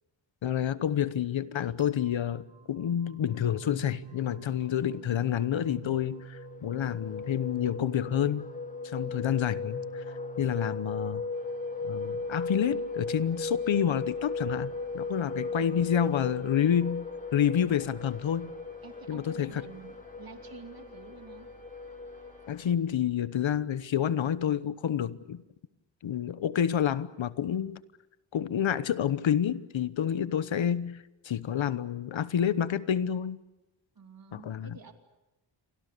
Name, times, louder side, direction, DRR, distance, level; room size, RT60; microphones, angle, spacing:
voice 1, 0.4-8.5 8.8-9.8 10.4-11.2 11.8-17.1 17.3-18.5 19.1-19.6 22.5-25.4 26.0-27.8 28.3-33.4 34.3-34.8, left 9 dB, 75° left, 1.1 m, -29 dB
sound 1, 1.8-12.7, right 7 dB, 80° right, 2.1 m, -50 dB
sound 2, 5.0-22.7, left 3 dB, 15° left, 0.9 m, -37 dB
voice 2, 9.0-9.6 15.2-15.9 18.8-21.5 33.9-34.9, right 5 dB, 50° right, 2.8 m, -50 dB
sound 3, 11.3-23.3, right 3 dB, 65° right, 3.8 m, -58 dB
29.5 x 24.0 x 6.8 m
wide cardioid pair, 150°, 47 cm